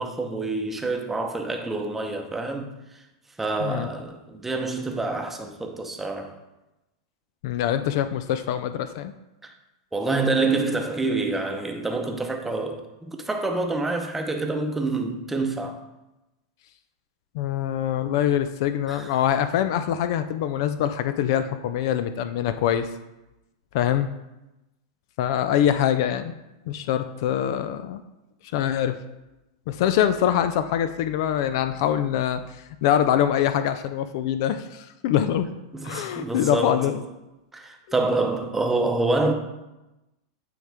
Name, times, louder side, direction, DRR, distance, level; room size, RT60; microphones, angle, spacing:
voice 1, 0.0-3.0 3.4-6.4 9.4-9.5 9.9-15.8 18.9-19.2 35.7-37.0 37.5-39.3, right 3 dB, 10° right, 0.8 m, -27 dB
voice 2, 7.4-9.1 17.3-22.9 23.7-24.1 25.2-26.3 26.7-28.0 28.5-29.0 29.7-35.5 35.8-36.9, left 10 dB, 60° left, 0.4 m, -24 dB
9.2 x 3.6 x 3.5 m
hypercardioid pair, 115°, 2 cm